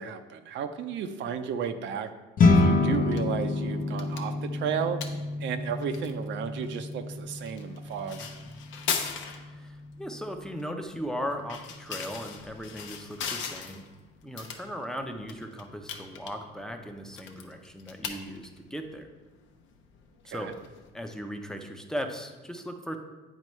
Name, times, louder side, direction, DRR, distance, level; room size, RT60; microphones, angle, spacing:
voice 1, 0.0-2.1 2.5-5.0 5.4-8.3 20.3-20.5, right 7 dB, 65° right, 8 dB, 0.6 m, -33 dB
sound 1, 2.4-11.8, left 3 dB, 45° left, 0.8 m, -29 dB
sound 2, 2.9-21.3, left 6 dB, 70° left, 0.8 m, -41 dB
voice 2, 8.2-8.5 9.4-13.9 14.2-19.1 20.3-20.5 20.9-23.0, equal, 5° left, 5 dB, 0.7 m, -38 dB
9.1 x 4.3 x 3.2 m, 1.2 s
cardioid pair, 95°, 20 cm